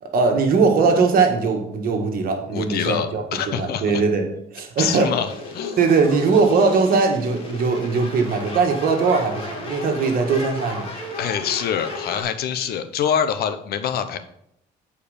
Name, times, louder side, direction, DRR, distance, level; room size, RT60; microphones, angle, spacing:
voice 1, 0.0-4.3 4.5-5.1 5.8-10.9, right 4 dB, 60° right, 3 dB, 1.7 m, -20 dB
voice 2, 2.5-4.0 4.8-5.8 11.2-14.2, left 8 dB, 65° left, 10 dB, 0.8 m, -25 dB
sound 1, 4.9-12.2, left 2 dB, 35° left, 2.7 m, -34 dB
8.6 x 4.8 x 5.0 m, 0.75 s
cardioid pair, 110°, 17 cm